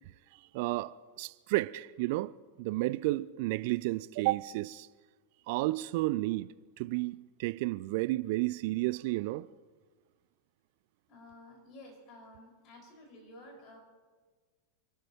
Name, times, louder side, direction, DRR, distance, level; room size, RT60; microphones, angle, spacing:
voice 1, 0.5-2.3 2.6-4.9 5.5-6.5 6.8-9.5, right 19 dB, 50° right, 0.3 m, -32 dB
voice 2, 11.1-13.8, left 1 dB, 35° left, 5.5 m, -52 dB
28.5 x 12.5 x 3.0 m
figure-of-eight pair, 90°, 0 cm